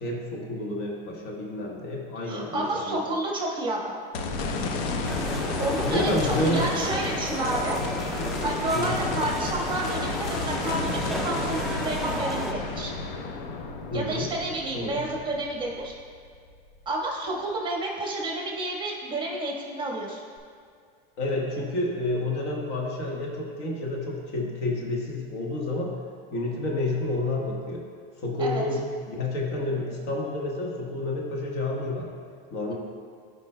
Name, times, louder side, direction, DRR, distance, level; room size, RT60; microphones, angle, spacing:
voice 1, 0.0-3.0 5.5-6.7 8.7-9.0 13.9-14.3 14.7-15.0 21.2-26.0 26.3-27.8 28.2-32.1 32.5-32.7, left 2 dB, 50° left, -1 dB, 1.3 m, -29 dB
voice 2, 2.3-4.0 5.6-7.8 8.1-8.2 8.4-12.9 13.9-15.9 16.8-20.2 28.4-28.6, right 2 dB, 15° right, -2 dB, 1.3 m, -30 dB
sound 1, 4.1-16.5 16.9-17.0 20.4-20.5, left 3 dB, 75° left, 0.8 m, -32 dB
sound 2, 5.0-12.5, right 1 dB, ahead, 0.3 m, -34 dB
13.0 x 5.1 x 2.2 m, 2.1 s
supercardioid pair, 115°, 30 cm